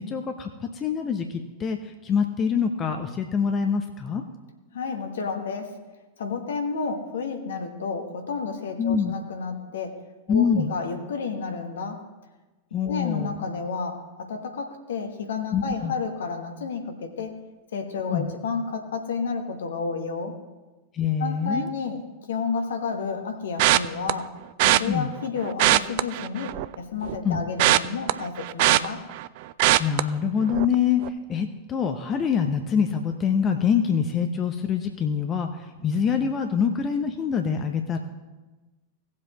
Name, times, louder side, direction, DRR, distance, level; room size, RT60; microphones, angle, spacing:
voice 1, 0.0-4.2 8.8-9.1 10.3-10.7 12.7-13.4 15.5-15.9 18.1-18.3 20.9-21.7 24.8-25.1 27.2-27.5 29.8-38.0, left 7 dB, 25° left, 5 dB, 0.7 m, -25 dB
voice 2, 4.7-5.9 6.2-12.1 12.9-17.4 17.7-20.4 21.2-24.3 24.6-29.1, left 5 dB, 65° left, 5 dB, 1.3 m, -31 dB
sound 1, 23.6-24.1 24.6-24.8 25.5-26.7 27.1-29.3 29.6-30.0 30.5-30.7 31.0-31.1, right 16 dB, 50° right, 0.4 m, -20 dB
18.0 x 7.4 x 3.0 m, 1.2 s
figure-of-eight pair, 90°, 0 cm